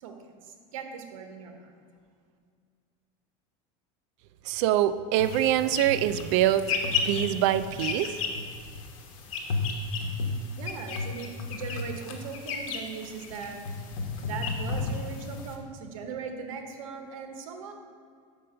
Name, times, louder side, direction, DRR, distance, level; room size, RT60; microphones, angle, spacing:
voice 1, 0.0-1.7 10.4-13.6 14.2-17.7, right 5 dB, 90° right, 5 dB, 1.0 m, -39 dB
voice 2, 4.4-6.7 7.1-8.2, right 12 dB, 60° right, 13 dB, 0.4 m, -24 dB
sound 1, 5.2-15.6, left 4 dB, 90° left, 1.1 m, -33 dB
5.4 x 5.4 x 6.6 m, 2.1 s
supercardioid pair, 145°, 17 cm